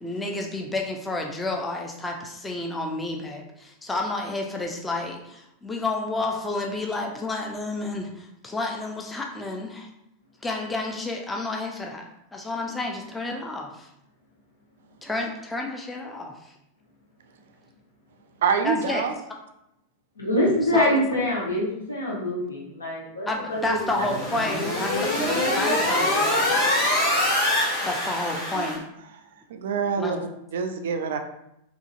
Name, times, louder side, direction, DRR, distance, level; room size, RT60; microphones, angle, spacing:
voice 1, 0.0-9.9 10.4-12.0 12.3-13.9 15.0-16.3 18.6-19.1 20.7-21.0 23.3-26.7 27.8-28.9 30.0-30.2, left 2 dB, 10° left, 1 dB, 0.5 m, -30 dB
voice 2, 18.4-19.1 28.5-28.7 29.5-30.2 30.5-31.2, right 6 dB, 60° right, 7 dB, 0.4 m, -25 dB
voice 3, 20.2-24.4, left 1 dB, 75° left, -5 dB, 1.2 m, -25 dB
sound 1, 23.7-28.7, left 1 dB, 40° left, 1.5 m, -24 dB
3.8 x 2.8 x 2.5 m, 0.80 s
figure-of-eight pair, 90°, 0 cm